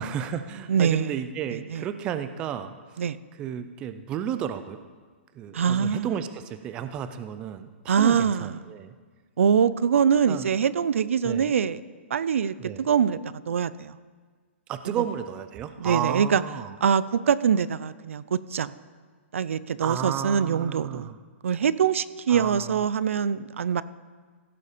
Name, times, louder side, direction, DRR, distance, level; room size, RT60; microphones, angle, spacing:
voice 1, 0.0-2.7 3.4-4.8 5.3-8.9 10.3-10.5 11.2-11.5 12.6-12.9 14.7-16.8 19.8-21.2 22.3-22.9, right 9 dB, 15° right, 10 dB, 0.3 m, -32 dB
voice 2, 0.7-1.2 1.5-1.9 3.0-3.2 5.5-6.1 7.9-8.5 9.4-11.8 12.1-14.0 14.9-15.0 15.8-16.4 16.8-18.8 19.3-21.1 21.4-23.8, right 7 dB, 85° right, 17 dB, 0.5 m, -24 dB
16.0 x 6.9 x 5.0 m, 1.5 s
hypercardioid pair, 170°, 7 cm